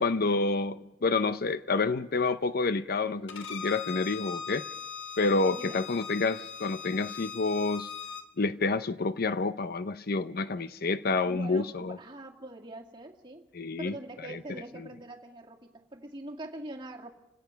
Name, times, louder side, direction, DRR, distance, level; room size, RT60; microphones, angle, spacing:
voice 1, 0.0-4.6 5.2-7.9 8.4-12.0 13.5-13.9 14.3-14.4, left 3 dB, 55° left, 0.6 m, -28 dB
Bowed string instrument, 3.3-8.2, left 7 dB, 75° left, 1.7 m, -40 dB
voice 2, 5.5-5.8 11.2-13.5 13.8-17.1, right 1 dB, 25° right, 2.2 m, -43 dB
29.5 x 17.0 x 5.8 m
head